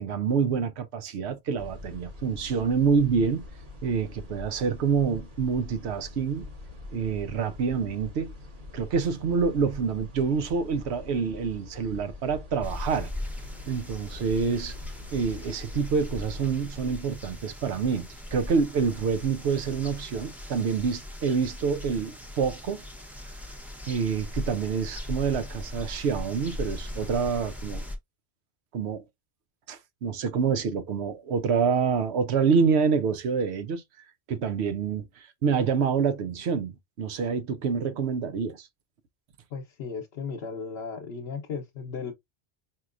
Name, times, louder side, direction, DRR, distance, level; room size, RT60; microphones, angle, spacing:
voice 1, 0.0-3.4 3.8-6.5 6.9-8.3 8.7-13.1 13.7-14.8 15.1-22.8 23.9-27.8 28.7-29.0 29.7-33.8 34.3-36.7 37.0-38.7, right 6 dB, 90° right, 0.9 m, -27 dB
sound 1, 1.6-16.7, left 3 dB, 50° right, 1.3 m, -44 dB
sound 2, 12.6-28.0, left 1 dB, ahead, 0.6 m, -39 dB
voice 2, 39.5-42.1, left 5 dB, 80° left, 1.0 m, -35 dB
4.4 x 2.8 x 2.4 m
omnidirectional pair, 1.1 m